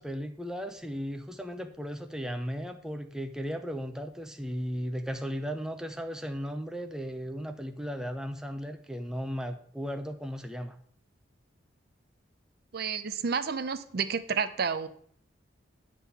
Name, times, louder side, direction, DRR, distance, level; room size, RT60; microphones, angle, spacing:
voice 1, 0.0-10.8, equal, 5° right, 6 dB, 0.5 m, -36 dB
voice 2, 12.7-14.9, right 6 dB, 50° right, 12 dB, 0.5 m, -30 dB
9.9 x 3.8 x 6.9 m, 0.62 s
head